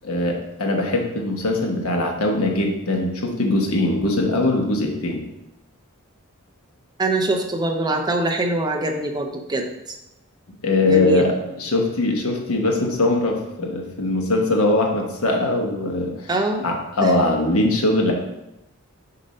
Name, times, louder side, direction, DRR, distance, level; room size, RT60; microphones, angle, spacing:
voice 1, 0.0-5.2 10.6-16.3 16.6-18.1, left 2 dB, 80° left, 1 dB, 1.1 m, -21 dB
voice 2, 7.0-9.9 10.8-11.3 16.3-16.7 17.0-17.1, right 1 dB, 20° right, 3 dB, 0.5 m, -23 dB
6.6 x 2.7 x 5.3 m, 0.89 s
head